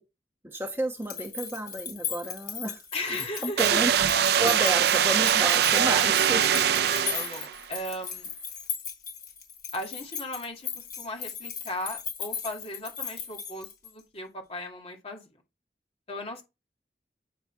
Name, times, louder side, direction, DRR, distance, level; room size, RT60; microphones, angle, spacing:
voice 1, 0.4-6.6, right 1 dB, 15° right, 1.0 m, -32 dB
sound 1, 0.9-14.0, left 7 dB, 55° left, 3.8 m, -37 dB
voice 2, 2.9-3.8 4.6-4.8 7.1-8.3 9.7-15.3 16.1-16.4, left 1 dB, 35° left, 2.3 m, -37 dB
sound 2, 3.6-7.6, right 9 dB, 60° right, 0.4 m, -23 dB
9.5 x 4.5 x 4.5 m
head